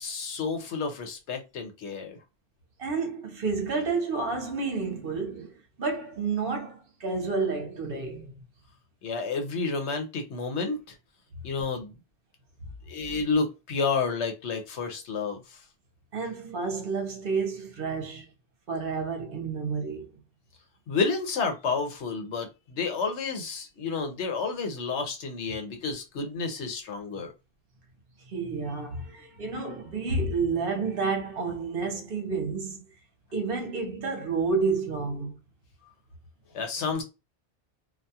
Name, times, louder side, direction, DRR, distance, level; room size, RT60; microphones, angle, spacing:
voice 1, 0.0-2.2 9.0-10.9 11.4-11.9 12.9-15.6 20.9-27.3 36.5-37.0, left 4 dB, 85° left, 1.0 m, -30 dB
voice 2, 2.8-8.3 16.1-18.3 18.7-20.1 28.3-32.8 33.3-35.4, right 4 dB, 60° right, 0.9 m, -30 dB
2.4 x 2.3 x 2.7 m
omnidirectional pair, 1.1 m